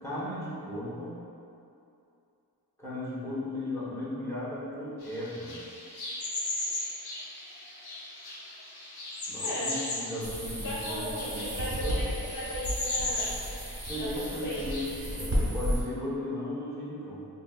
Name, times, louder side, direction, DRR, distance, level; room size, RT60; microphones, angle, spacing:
voice 1, 0.0-1.2 2.8-5.6 9.3-12.0 13.9-17.3, left 1 dB, 5° left, -10 dB, 1.1 m, -36 dB
sound 1, 5.0-14.8, left 2 dB, 75° left, 0.6 m, -37 dB
voice 2, 9.4-9.7 10.6-12.0 12.3-13.3 14.0-14.8, left 1 dB, 55° left, -10 dB, 1.3 m, -36 dB
sound 2, 10.2-15.8, equal, 40° right, 0.7 m, -33 dB
5.1 x 2.0 x 2.3 m, 2.6 s
wide cardioid pair, 60°, 39 cm